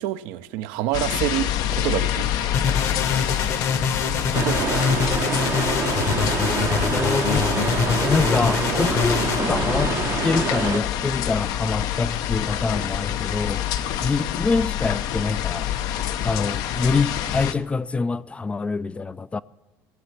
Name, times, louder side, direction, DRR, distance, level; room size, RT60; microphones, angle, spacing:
voice 1, 0.0-2.8 3.3-3.4 4.4-5.3, right 14 dB, 80° right, 0.7 m, -29 dB
sound 1, 0.9-17.5, left 11 dB, 65° left, 0.7 m, -26 dB
sound 2, 2.5-9.4, left 5 dB, 45° left, 1.0 m, -25 dB
sound 3, 4.3-10.8, right 7 dB, 40° right, 0.6 m, -27 dB
voice 2, 6.9-7.5 8.0-10.0 10.2-13.6 14.0-15.7 16.2-19.4, left 4 dB, 15° left, 0.3 m, -25 dB
16.5 x 7.7 x 5.9 m
supercardioid pair, 105°, 7 cm